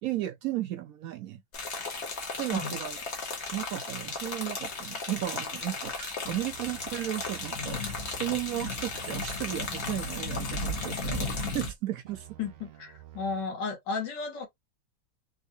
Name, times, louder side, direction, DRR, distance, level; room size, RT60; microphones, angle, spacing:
voice 1, 0.0-1.4 2.4-3.0 3.5-12.3, right 14 dB, 70° right, 0.9 m, -34 dB
sound 1, 1.5-11.7, left 3 dB, 45° left, 1.1 m, -35 dB
sound 2, 6.2-11.7 12.0-13.4, right 12 dB, 90° right, 0.5 m, -50 dB
voice 2, 12.4-14.5, left 4 dB, 85° left, 1.7 m, -34 dB
3.5 x 2.6 x 2.7 m
omnidirectional pair, 1.8 m